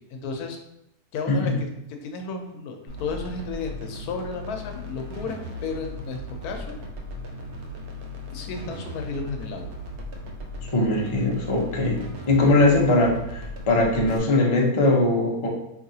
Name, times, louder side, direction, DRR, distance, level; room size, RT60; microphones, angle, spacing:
voice 1, 0.1-0.6 1.1-1.5 2.0-6.8 8.3-9.7, left 4 dB, 80° left, 4 dB, 1.1 m, -33 dB
sound 1, 2.9-14.2, equal, 60° right, 0.8 m, -37 dB
voice 2, 10.7-15.5, left 2 dB, 35° left, -2 dB, 0.5 m, -21 dB
4.7 x 2.9 x 2.7 m, 0.84 s
omnidirectional pair, 1.6 m